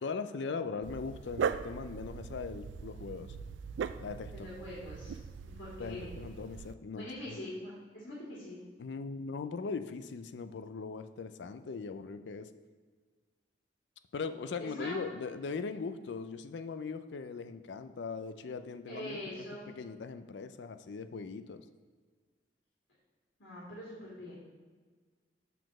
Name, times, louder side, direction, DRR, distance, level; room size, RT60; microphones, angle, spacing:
voice 1, 0.0-3.4 4.0-4.5 5.8-7.4 8.8-12.5 14.1-21.6, left 4 dB, 70° left, 10 dB, 0.4 m, -40 dB
Dog, 0.8-6.7, right 6 dB, 80° right, 0.3 m, -39 dB
voice 2, 4.3-6.3 6.9-8.6 14.6-15.0 18.9-19.6 23.4-24.3, left 1 dB, 85° left, -7 dB, 2.3 m, -43 dB
6.9 x 4.0 x 6.2 m, 1.5 s
head